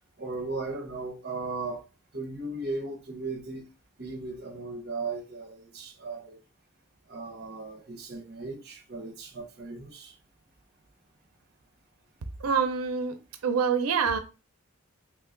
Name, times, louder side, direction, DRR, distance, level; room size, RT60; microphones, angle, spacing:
voice 1, 0.2-1.8 2.1-3.7 4.0-6.4 7.1-10.1, right 3 dB, 45° right, 0.6 m, -36 dB
voice 2, 12.4-13.2 13.4-14.2, right 6 dB, 90° right, 0.5 m, -26 dB
3.1 x 2.2 x 3.6 m
head